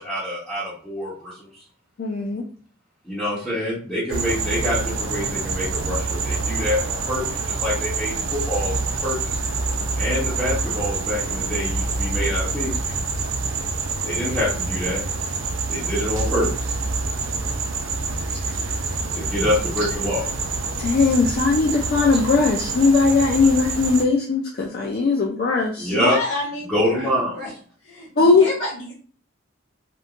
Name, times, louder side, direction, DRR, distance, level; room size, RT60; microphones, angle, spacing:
voice 1, 0.0-1.5 3.0-8.1 8.5-9.4 10.0-12.9 14.0-15.0 15.7-16.8 19.1-20.2 25.8-26.2 26.7-27.4, left 1 dB, 5° left, -12 dB, 1.0 m, -26 dB
voice 2, 2.0-2.4 20.8-25.9 28.2-28.5, left 4 dB, 45° left, -1 dB, 0.3 m, -19 dB
sound 1, 4.1-24.0, right 3 dB, 75° right, 0.4 m, -26 dB
voice 3, 25.9-27.5 27.8-28.9, left 1 dB, 85° left, -9 dB, 1.1 m, -29 dB
2.9 x 2.1 x 2.4 m, 0.43 s
head